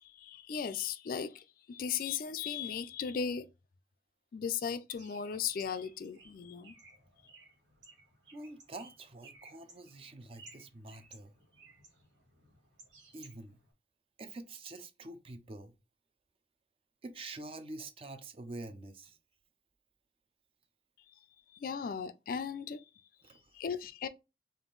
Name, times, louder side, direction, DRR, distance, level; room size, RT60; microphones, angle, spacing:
voice 1, 0.0-3.5 4.3-6.7 21.6-22.8 23.5-24.1, left 7 dB, 50° left, 0.3 m, -37 dB
Bird, 5.0-13.7, right 3 dB, 85° right, 1.6 m, -59 dB
voice 2, 8.3-11.3 13.1-13.6 14.2-15.7 17.0-19.2 23.2-23.5, right 2 dB, 30° right, 0.4 m, -46 dB
3.6 x 2.5 x 3.8 m
head